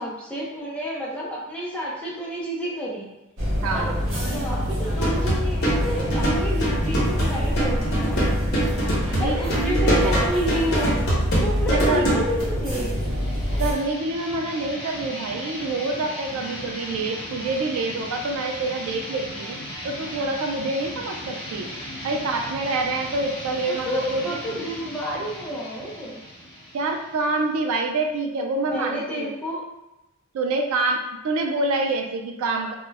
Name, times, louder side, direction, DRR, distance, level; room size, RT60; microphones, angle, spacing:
voice 1, 0.0-3.1 3.7-3.9 4.2-8.4 9.2-11.0 11.4-12.9 23.6-26.2 28.7-29.6, equal, 5° left, -6 dB, 0.5 m, -30 dB
sound 1, 3.4-13.7, equal, 65° right, 0.8 m, -26 dB
voice 2, 3.6-4.0 9.1-10.3 11.7-12.2 13.6-19.6 19.8-21.7 22.0-24.4 26.7-29.3 30.3-32.7, right 3 dB, 80° right, 3 dB, 0.3 m, -27 dB
sound 2, 5.0-12.4, right 1 dB, 50° left, 0.8 m, -24 dB
sound 3, 12.8-28.1, equal, 30° left, 1.0 m, -37 dB
2.2 x 2.0 x 3.3 m, 0.95 s
head